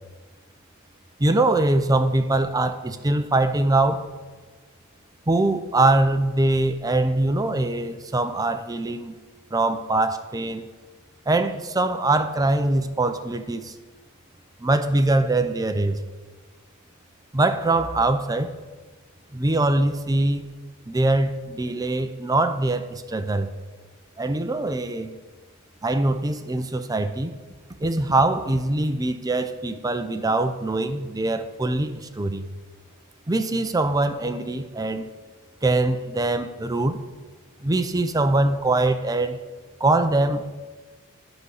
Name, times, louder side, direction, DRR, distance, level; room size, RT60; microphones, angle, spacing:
voice 1, 1.2-4.1 5.3-9.1 9.5-10.6 11.3-13.7 14.6-16.0 17.3-18.5 19.3-20.5 20.9-23.5 24.2-25.1 25.8-27.3 27.8-32.5 33.3-35.0 35.6-37.0 37.6-39.4 39.8-40.5, right 2 dB, 15° right, 9 dB, 0.6 m, -23 dB
10.5 x 5.4 x 6.4 m, 1.3 s
head